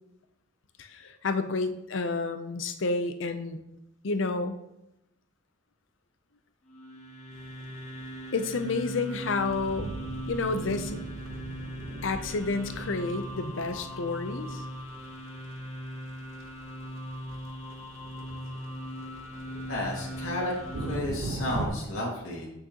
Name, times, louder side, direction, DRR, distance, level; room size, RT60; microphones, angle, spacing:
voice 1, 0.8-3.6 4.0-4.5 8.3-10.0 10.3-11.0 12.0-14.6, left 3 dB, 65° left, 9 dB, 0.6 m, -30 dB
sound 1, 6.7-21.0, right 1 dB, 30° left, 1.2 m, -40 dB
sound 2, 7.3-21.7, right 2 dB, 70° right, 1.0 m, -41 dB
voice 2, 19.7-20.5 20.8-22.5, left 1 dB, 90° left, -4 dB, 2.2 m, -32 dB
8.3 x 6.5 x 2.9 m, 0.87 s
head